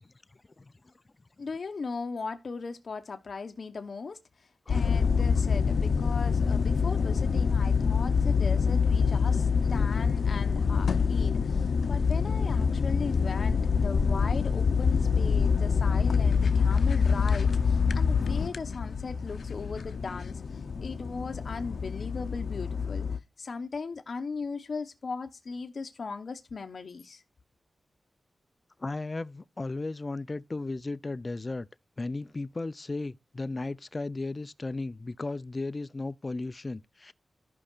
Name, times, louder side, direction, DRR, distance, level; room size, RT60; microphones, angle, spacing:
voice 1, 0.6-0.9 4.7-5.0 28.8-31.7 32.0-37.1, left 2 dB, 35° left, 0.5 m, -35 dB
voice 2, 1.4-23.1 23.4-27.2, left 4 dB, 60° left, 0.9 m, -38 dB
sound 1, 4.7-23.2, left 5 dB, 80° left, 0.6 m, -26 dB
15.0 x 5.4 x 2.4 m
wide cardioid pair, 100°, 0 cm